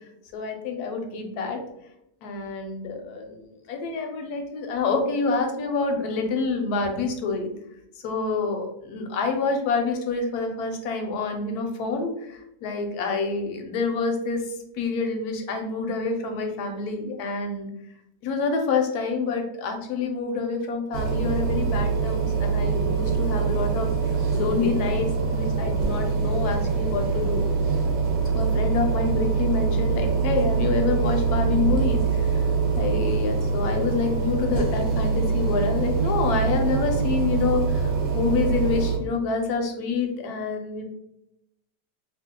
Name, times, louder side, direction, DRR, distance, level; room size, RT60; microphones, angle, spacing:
voice 1, 0.3-1.6 2.2-7.5 8.0-17.7 18.2-23.9 24.3-27.4 28.3-32.5 32.7-40.8, left 4 dB, 75° left, 3 dB, 1.0 m, -27 dB
sound 1, 20.9-39.0, right 5 dB, 60° right, 0.9 m, -24 dB
2.8 x 2.3 x 3.6 m, 0.82 s
omnidirectional pair, 1.8 m